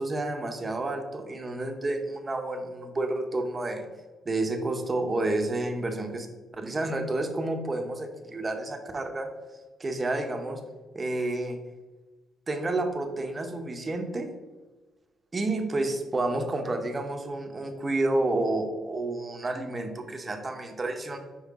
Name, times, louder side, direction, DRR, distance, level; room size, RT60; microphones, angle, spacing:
voice 1, 0.0-3.9 4.2-6.3 6.6-9.3 9.8-10.6 10.9-11.6 12.5-14.3 15.3-21.2, right 2 dB, 25° right, 5 dB, 0.9 m, -30 dB
5.7 x 4.6 x 3.6 m, 1.3 s
cardioid pair, 90°, 0 cm